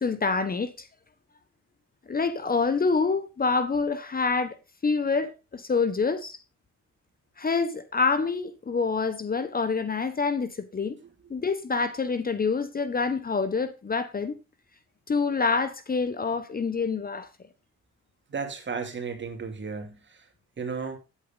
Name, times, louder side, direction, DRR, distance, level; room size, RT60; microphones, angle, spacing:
voice 1, 0.0-0.9 2.1-4.6 4.8-6.4 7.4-11.0 11.3-14.4 15.1-17.3, left 4 dB, 30° left, 1.1 m, -26 dB
voice 2, 18.3-19.9 20.6-21.0, right 5 dB, 40° right, 2.8 m, -33 dB
9.3 x 8.3 x 3.9 m
cardioid pair, 90°, 30 cm